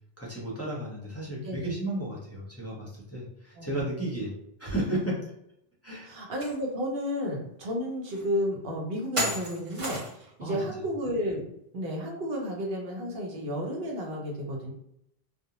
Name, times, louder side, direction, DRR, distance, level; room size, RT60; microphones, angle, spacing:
voice 1, 0.2-5.3 5.8-6.1 9.2-9.3 10.4-10.8, right 1 dB, 20° left, -6 dB, 0.5 m, -33 dB
voice 2, 1.4-1.7 3.6-3.8 5.9-11.4 11.7-14.7, equal, 70° right, 0 dB, 0.9 m, -32 dB
sound 1, 6.4-6.5 7.0-7.1 8.1-8.2 9.2-10.3, right 1 dB, 35° right, 0.7 m, -32 dB
2.4 x 2.0 x 2.8 m, 0.76 s
omnidirectional pair, 1.0 m